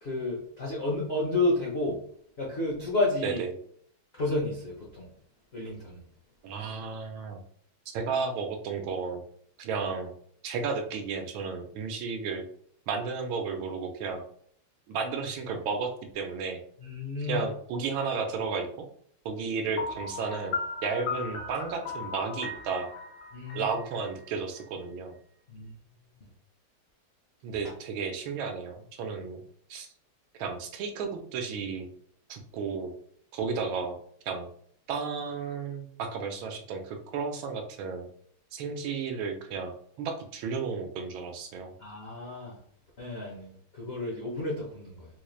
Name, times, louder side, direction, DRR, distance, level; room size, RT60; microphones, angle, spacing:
voice 1, 0.0-2.0 2.4-3.4 4.1-5.0 5.5-6.0 16.8-17.4 23.3-23.7 25.5-25.7 41.8-42.6 43.0-45.1, left 2 dB, 90° left, -3 dB, 0.5 m, -31 dB
voice 2, 6.4-7.4 7.9-9.2 9.6-10.1 10.4-12.4 12.9-14.2 14.9-16.6 17.2-18.8 19.2-20.6 20.8-22.9 23.5-25.1 27.4-29.4 29.7-29.9 30.4-31.9 32.3-32.9 33.3-33.9 34.2-34.5 34.9-38.1 38.5-39.7 40.0-41.7, right 5 dB, 80° right, 4 dB, 1.4 m, -33 dB
Piano, 19.8-24.6, left 4 dB, 70° left, 1.0 m, -37 dB
4.2 x 3.1 x 2.3 m, 0.62 s
omnidirectional pair, 2.3 m